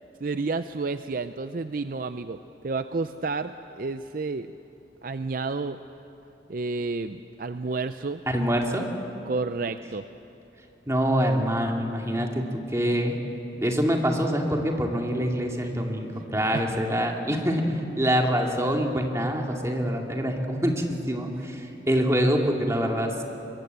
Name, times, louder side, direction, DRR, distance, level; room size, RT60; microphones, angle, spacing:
voice 1, 0.2-2.4 2.6-4.5 5.0-5.8 6.5-8.2 9.3-10.0 16.5-16.6, right 3 dB, 50° right, 10 dB, 0.5 m, -30 dB
voice 2, 8.3-8.9 10.9-13.2 13.6-23.2, equal, 15° right, 1 dB, 2.3 m, -25 dB
24.0 x 22.0 x 8.0 m, 2.8 s
head